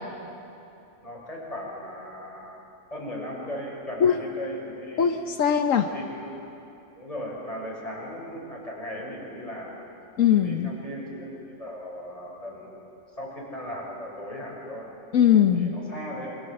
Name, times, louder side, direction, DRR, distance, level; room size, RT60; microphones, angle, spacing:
voice 1, 1.0-5.1 5.9-6.3 6.9-9.8 10.3-11.3 11.6-12.9 13.2-14.9 15.5-16.3, equal, 30° left, -3 dB, 6.2 m, -37 dB
voice 2, 5.0-5.9 10.2-10.7 15.1-15.7, left 9 dB, 85° left, 6 dB, 1.3 m, -20 dB
28.0 x 24.5 x 7.8 m, 2.9 s
omnidirectional pair, 1.3 m